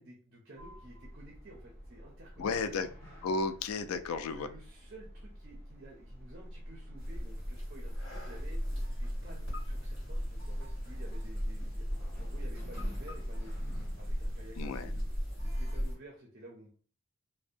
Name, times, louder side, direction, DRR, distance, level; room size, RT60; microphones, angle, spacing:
voice 1, 0.0-2.9 4.3-8.6 8.9-11.9 12.2-15.0 15.4-16.7, right 1 dB, 45° right, -1 dB, 0.5 m, -53 dB
Sliding door, 0.6-15.8, equal, 5° right, 1.5 m, -47 dB
voice 2, 2.4-2.9 3.2-4.5 14.6-14.9, left 4 dB, 85° left, 9 dB, 0.3 m, -33 dB
sound 1, 7.0-15.9, equal, 25° left, 1.4 m, -36 dB
2.6 x 2.1 x 2.5 m, 0.41 s
head